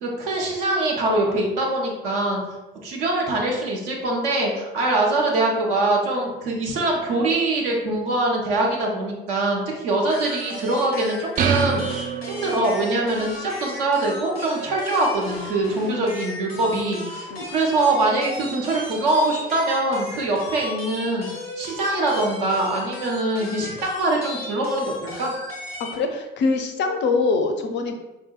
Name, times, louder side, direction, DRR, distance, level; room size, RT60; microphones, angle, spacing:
voice 1, 0.0-2.4 2.8-21.3 21.6-25.3, right 2 dB, 65° right, -1 dB, 1.0 m, -23 dB
sound 1, 10.1-26.0, left 1 dB, 90° left, 0.7 m, -36 dB
sound 2, 11.4-13.0, right 6 dB, 30° right, 0.4 m, -25 dB
voice 2, 25.9-27.9, left 3 dB, 40° left, 6 dB, 0.5 m, -23 dB
4.7 x 2.6 x 2.3 m, 1.0 s
figure-of-eight pair, 55°, 29 cm